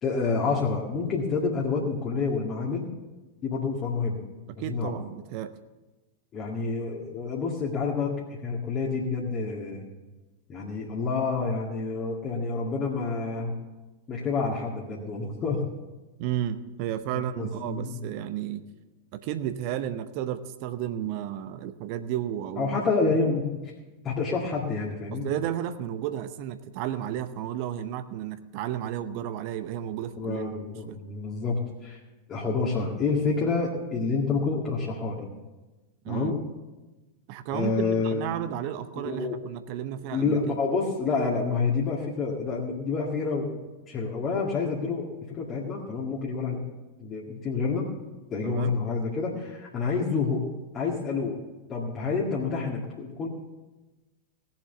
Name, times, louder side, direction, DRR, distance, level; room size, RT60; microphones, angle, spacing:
voice 1, 0.0-2.8 3.4-4.2 4.6-4.9 6.3-9.9 10.5-13.5 14.1-15.6 17.1-18.0 22.6-23.7 24.0-25.3 30.2-32.0 32.3-35.3 36.1-36.4 37.5-38.2 39.0-39.4 40.1-43.6 43.9-46.7 47.0-47.9 48.3-50.5 50.7-51.4 51.7-53.3, left 4 dB, 30° left, -3 dB, 2.0 m, -28 dB
voice 2, 4.6-5.5 16.2-18.6 19.1-22.8 25.1-30.4 30.9-31.0 36.0-36.3 37.3-40.6 48.4-48.7, right 11 dB, 45° right, 11 dB, 0.7 m, -32 dB
17.5 x 7.5 x 7.0 m, 1.2 s
figure-of-eight pair, 90°, 0 cm